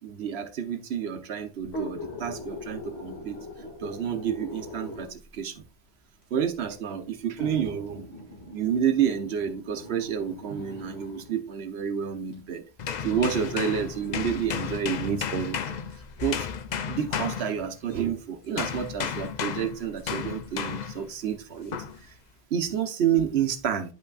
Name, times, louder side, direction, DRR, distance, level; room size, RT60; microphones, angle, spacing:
voice 1, 0.0-3.4 3.8-5.6 6.3-8.0 8.5-12.6 13.0-15.6 16.2-16.5 16.9-21.8 22.5-23.9, right 8 dB, 75° right, 1.1 m, -29 dB
sound 1, 1.6-5.3 6.2-6.3 7.4-11.3 12.3-12.4 13.1-15.7 16.2-16.3, left 1 dB, 80° left, 2.6 m, -41 dB
sound 2, 12.8-18.1 18.6-21.1 21.7-22.0, left 7 dB, 55° left, 0.6 m, -33 dB
9.6 x 5.7 x 2.4 m
omnidirectional pair, 1.1 m